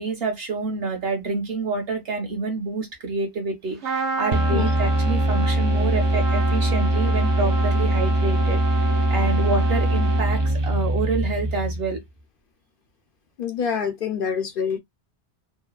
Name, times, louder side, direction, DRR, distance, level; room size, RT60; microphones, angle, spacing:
voice 1, 0.0-12.0, right 3 dB, 65° right, 1.1 m, -28 dB
Trumpet, 3.8-10.7, right 5 dB, 90° right, 1.1 m, -30 dB
sound 1, 4.3-12.0, equal, 35° right, 0.4 m, -22 dB
voice 2, 13.4-14.8, left 7 dB, 60° left, 0.7 m, -26 dB
2.8 x 2.1 x 2.3 m
omnidirectional pair, 1.1 m